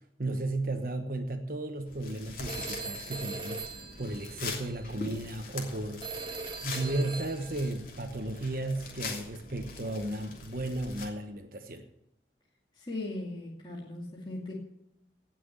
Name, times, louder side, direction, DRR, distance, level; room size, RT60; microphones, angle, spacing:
voice 1, 0.2-6.3 6.6-11.9, right 2 dB, 55° right, 7 dB, 1.3 m, -34 dB
sound 1, 1.9-11.1, left 3 dB, 50° left, 3.0 m, -43 dB
Telephone, 2.5-4.8 6.0-7.7, right 3 dB, 25° right, 1.6 m, -40 dB
voice 2, 12.7-14.5, left 2 dB, 25° left, -3 dB, 2.3 m, -38 dB
18.0 x 6.2 x 8.9 m, 0.81 s
head